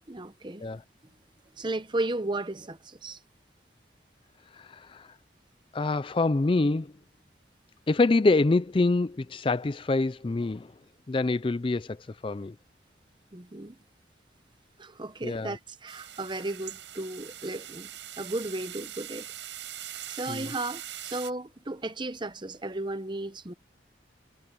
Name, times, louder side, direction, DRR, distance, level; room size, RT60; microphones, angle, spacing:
voice 1, 0.1-0.7 1.6-3.2 13.3-13.8 14.8-17.9 18.2-19.3 20.1-23.5, right 2 dB, 25° right, 0.9 m, -34 dB
voice 2, 4.5-5.1 5.7-6.9 7.9-10.7 11.1-12.6 15.2-15.6 20.3-20.5, left 3 dB, 30° left, 0.4 m, -26 dB
sound 1, 15.9-21.3, right 12 dB, 85° right, 6.7 m, -42 dB
head